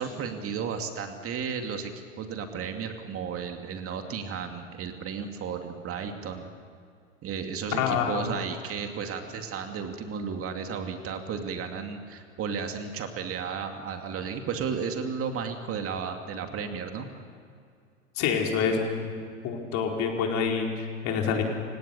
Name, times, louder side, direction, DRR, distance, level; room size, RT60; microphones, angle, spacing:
voice 1, 0.0-1.9 2.2-6.5 7.2-17.1, right 6 dB, 35° right, 5 dB, 2.4 m, -33 dB
voice 2, 7.8-8.2 18.2-19.1 19.4-21.4, left 6 dB, 50° left, 1 dB, 4.7 m, -27 dB
29.0 x 17.5 x 7.0 m, 2.3 s
hypercardioid pair, 95°, 37 cm